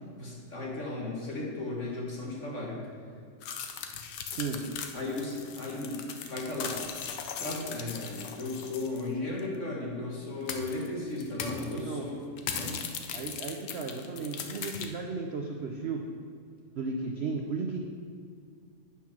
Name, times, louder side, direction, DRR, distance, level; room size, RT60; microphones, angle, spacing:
voice 1, 0.1-2.8 4.5-4.6 4.9-6.8 7.4-12.2 12.5-12.8, left 2 dB, 45° left, -3 dB, 2.1 m, -35 dB
sound 1, 3.4-9.1 9.4-9.5 10.5-10.9 11.2-11.8 12.4-14.9, left 7 dB, 85° left, 1.4 m, -39 dB
voice 2, 4.3-4.6 11.7-12.0 13.1-16.0 16.8-17.8, right 4 dB, 60° right, 2 dB, 0.7 m, -34 dB
8.8 x 5.8 x 6.1 m, 2.3 s
omnidirectional pair, 1.8 m